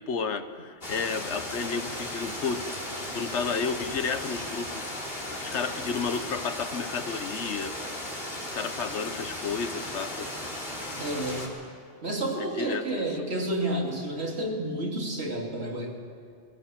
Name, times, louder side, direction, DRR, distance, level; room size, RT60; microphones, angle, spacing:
voice 1, 0.0-2.6 3.1-4.8 5.4-7.7 8.5-10.3 12.4-13.3, left 5 dB, 80° left, 10 dB, 1.3 m, -32 dB
sound 1, 0.8-11.5, left 1 dB, 55° left, 3.4 m, -36 dB
voice 2, 11.0-11.4 12.0-16.0, right 1 dB, 70° right, 0 dB, 2.7 m, -30 dB
20.0 x 17.5 x 7.6 m, 2.2 s
omnidirectional pair, 1.2 m